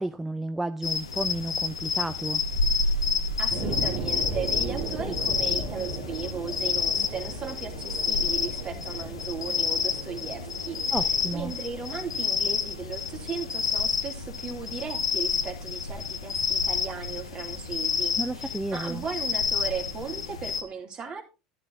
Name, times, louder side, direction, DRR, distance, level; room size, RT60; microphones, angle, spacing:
voice 1, 0.0-2.4 10.9-11.5 18.2-19.0, right 2 dB, 10° right, 0.5 m, -32 dB
sound 1, 0.8-20.6, left 5 dB, 90° left, 0.8 m, -29 dB
voice 2, 3.4-10.9 11.3-21.2, right 5 dB, 35° right, 2.5 m, -37 dB
sound 2, 3.5-14.5 15.0-15.1, right 2 dB, 70° right, 2.5 m, -37 dB
11.5 x 10.5 x 2.6 m
hypercardioid pair, 75°, 3 cm